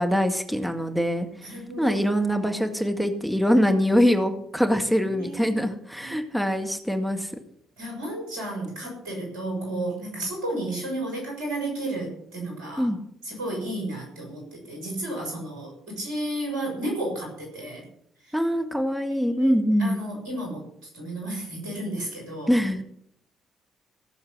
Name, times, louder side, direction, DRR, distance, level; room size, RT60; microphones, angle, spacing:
voice 1, 0.0-7.3 12.8-13.0 18.3-20.0 22.5-22.8, equal, ahead, 4 dB, 1.9 m, -23 dB
voice 2, 1.4-2.0 5.1-5.5 6.0-6.2 7.8-12.9 13.2-17.8 18.2-18.4 19.4-22.5, right 1 dB, 75° right, 1 dB, 6.5 m, -32 dB
16.5 x 7.2 x 8.1 m, 0.70 s
figure-of-eight pair, 45°, 0 cm